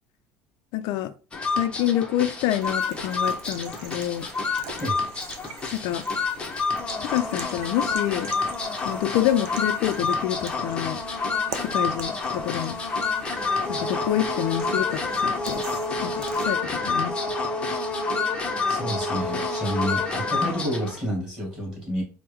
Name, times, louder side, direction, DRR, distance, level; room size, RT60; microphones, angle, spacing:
voice 1, 0.7-1.1 1.5-4.3 5.7-6.0 7.0-8.3 8.8-11.0 11.6-12.8 13.7-15.6 16.0-17.1, left 12 dB, 70° left, 9 dB, 0.3 m, -27 dB
sound 1, 1.3-21.0, left 3 dB, 15° left, 0.6 m, -28 dB
sound 2, 2.6-16.5, right 7 dB, 80° right, 0.6 m, -44 dB
voice 2, 18.7-22.0, equal, 10° right, -2 dB, 2.0 m, -29 dB
4.4 x 2.0 x 3.5 m, 0.36 s
cardioid pair, 150°, 6 cm